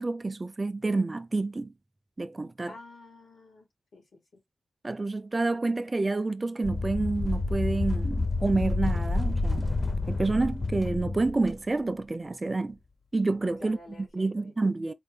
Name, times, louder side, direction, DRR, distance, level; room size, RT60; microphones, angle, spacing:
voice 1, 0.0-1.7 2.2-2.7 4.8-9.7 10.1-12.8 13.1-14.9, right 3 dB, 25° right, 0.3 m, -28 dB
voice 2, 2.7-3.7 3.9-4.4 13.6-14.6, left 2 dB, 85° left, 1.8 m, -50 dB
sound 1, 6.6-11.6, left 2 dB, 35° left, 0.5 m, -29 dB
4.2 x 2.1 x 3.6 m
wide cardioid pair, 135°, 0 cm